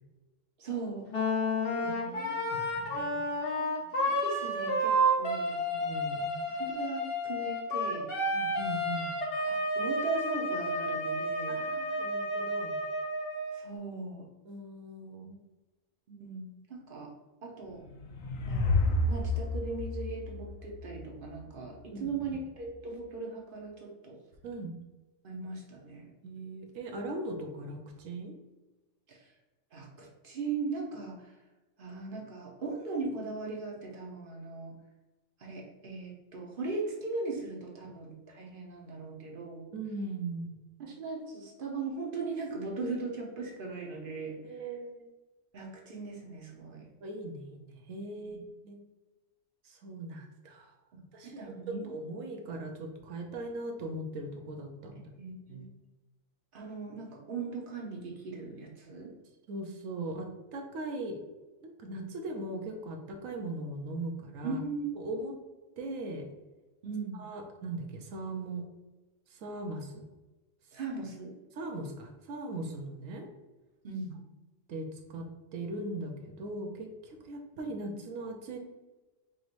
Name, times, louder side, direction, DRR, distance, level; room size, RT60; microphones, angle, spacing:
voice 1, 0.6-1.1 1.8-2.3 3.8-5.6 6.6-8.1 9.5-11.6 13.5-14.3 16.1-17.1 17.4-17.8 18.5-24.2 25.2-26.1 29.1-29.3 29.7-31.3 31.8-34.7 35.4-39.7 40.8-44.6 45.5-46.9 48.2-48.4 51.2-51.9 55.2-55.7 56.5-59.1 64.4-64.9 66.8-67.2 70.7-71.3 73.8-74.2, right 4 dB, 45° right, -1 dB, 1.0 m, -39 dB
Wind instrument woodwind instrument, 1.1-13.6, equal, 50° left, 1.0 m, -31 dB
voice 2, 1.8-3.3 5.7-6.5 8.3-9.1 11.5-12.8 14.5-15.4 21.9-22.4 24.4-24.8 26.2-28.3 39.7-40.5 44.5-45.1 47.0-48.8 49.6-50.7 51.1-55.1 55.5-55.7 59.5-61.2 61.6-64.6 65.0-65.3 65.8-66.2 67.1-68.6 69.3-70.0 71.5-73.3 74.7-75.3 75.5-78.6, right 2 dB, 80° right, 3 dB, 1.1 m, -39 dB
sound 1, 17.7-21.2, left 2 dB, 80° left, 1.0 m, -30 dB
5.1 x 3.1 x 2.5 m, 1.1 s
omnidirectional pair, 1.4 m